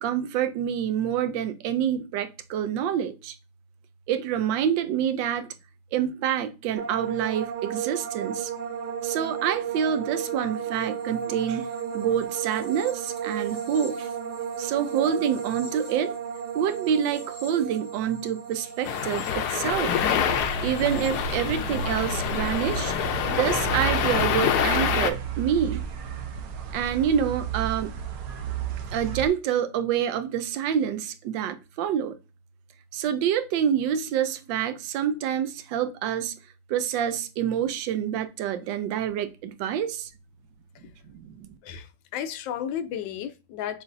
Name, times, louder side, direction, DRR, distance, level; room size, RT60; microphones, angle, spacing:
voice 1, 0.0-3.3 4.1-5.5 5.9-8.5 9.0-14.1 14.6-16.1 16.5-20.0 20.6-22.9 23.3-25.8 26.7-27.9 28.9-32.2 32.9-36.3 36.7-40.1 41.1-41.5, right 9 dB, 80° right, 1.3 m, -27 dB
sound 1, 6.8-22.0 22.2-22.9, right 8 dB, 45° right, 1.2 m, -34 dB
sound 2, 18.8-25.1, left 9 dB, 70° left, 1.0 m, -26 dB
sound 3, 19.7-29.3, right 8 dB, 65° right, 1.0 m, -33 dB
voice 2, 42.1-43.8, left 9 dB, 85° left, 1.4 m, -33 dB
7.0 x 2.5 x 2.6 m
omnidirectional pair, 2.0 m